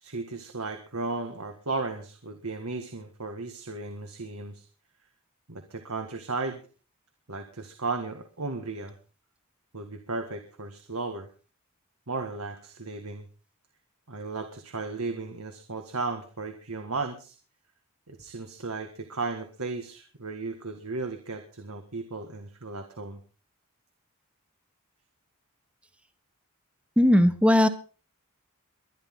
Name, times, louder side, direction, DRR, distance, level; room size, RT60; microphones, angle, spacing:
voice 1, 0.0-4.7 5.5-6.6 7.3-8.9 9.7-11.3 12.1-13.3 14.1-17.4 18.1-23.2, right 3 dB, 75° right, 6 dB, 1.9 m, -35 dB
voice 2, 27.0-27.7, left 1 dB, 5° right, 10 dB, 1.2 m, -18 dB
23.5 x 11.0 x 3.9 m, 0.37 s
head